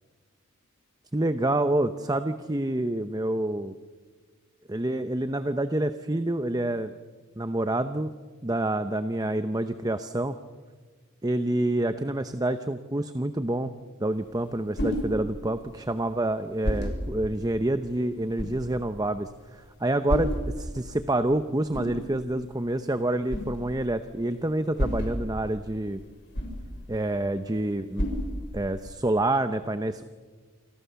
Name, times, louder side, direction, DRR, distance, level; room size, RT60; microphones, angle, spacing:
voice 1, 1.1-3.8 4.7-7.0 7.4-8.1 8.4-10.4 11.2-13.7 14.0-26.0 26.9-28.1 28.5-30.0, right 1 dB, 15° right, 10 dB, 0.8 m, -27 dB
sound 1, 14.1-29.0, equal, 50° left, 6.5 m, -35 dB
28.5 x 26.5 x 7.0 m, 1.5 s
head